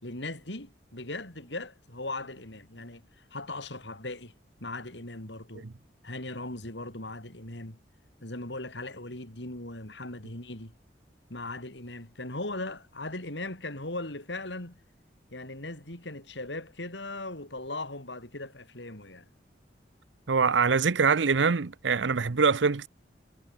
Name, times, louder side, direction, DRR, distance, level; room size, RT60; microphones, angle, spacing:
voice 1, 0.0-3.0 3.3-4.3 4.6-5.7 6.0-7.8 8.2-10.7 11.3-14.8 15.3-19.3, left 2 dB, 80° left, 5.2 m, -38 dB
voice 2, 20.3-22.9, right 5 dB, 85° right, 0.7 m, -24 dB
head